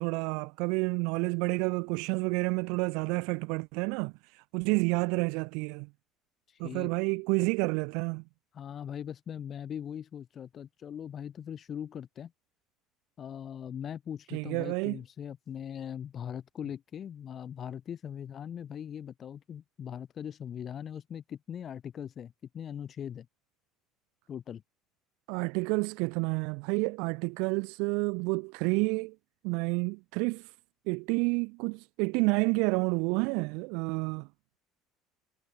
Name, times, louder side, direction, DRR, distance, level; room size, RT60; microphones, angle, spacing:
voice 1, 0.0-5.9 6.6-8.2 14.3-15.0 25.3-29.2 29.4-30.5 30.9-34.3, right 31 dB, 75° right, 0.6 m, -29 dB
voice 2, 6.5-6.9 8.5-12.3 13.2-23.3 24.3-24.6, left 9 dB, 35° left, 3.7 m, -40 dB
cardioid pair, 135°, 0 cm